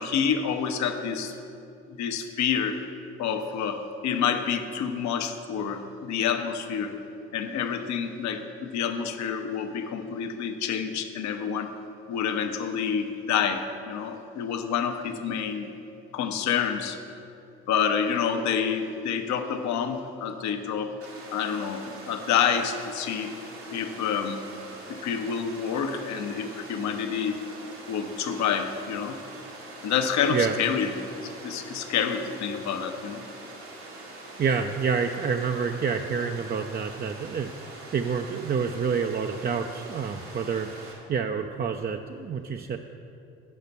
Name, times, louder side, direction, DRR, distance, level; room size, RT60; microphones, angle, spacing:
voice 1, 0.0-1.3 1.9-2.8 3.2-6.9 7.3-11.7 12.1-15.7 16.1-17.0 17.7-21.0 21.3-23.3 23.7-24.4 24.9-27.4 27.9-29.2 29.8-31.0 31.2-33.2, left 7 dB, 65° left, 6 dB, 0.9 m, -28 dB
Water, 21.0-40.9, right 2 dB, 85° right, 2.0 m, -44 dB
voice 2, 34.4-37.5 37.9-40.7 41.1-42.8, right 6 dB, 30° right, 5 dB, 0.5 m, -28 dB
8.4 x 5.7 x 6.8 m, 2.7 s
hypercardioid pair, 55°, 31 cm